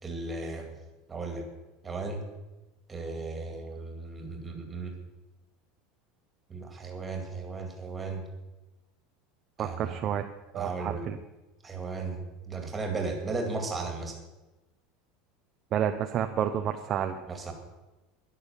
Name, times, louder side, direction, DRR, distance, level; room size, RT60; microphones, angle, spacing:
voice 1, 0.0-0.7 1.1-1.4 1.8-2.2 2.9-4.9 6.5-8.2 9.6-10.0 10.5-11.1 11.6-14.2 17.3-17.5, right 3 dB, 10° right, 3 dB, 2.2 m, -35 dB
voice 2, 9.6-10.2 10.5-11.2 15.7-17.2, right 9 dB, 25° right, 6 dB, 0.6 m, -30 dB
12.5 x 11.0 x 7.1 m, 1.1 s
supercardioid pair, 180°, 0 cm